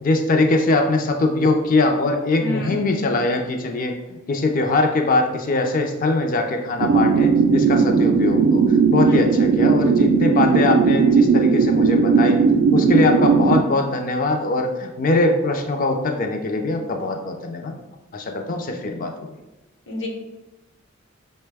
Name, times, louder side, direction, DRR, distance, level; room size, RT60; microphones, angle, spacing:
voice 1, 0.0-4.0 4.3-12.4 12.7-17.7 18.1-19.3, left 2 dB, 40° left, 4 dB, 0.4 m, -22 dB
voice 2, 2.4-2.7 9.0-9.2 19.9-20.1, left 1 dB, 60° left, 0 dB, 0.9 m, -29 dB
sound 1, 6.8-13.6, right 5 dB, 60° right, 0.3 m, -17 dB
5.6 x 2.1 x 3.3 m, 1.0 s
head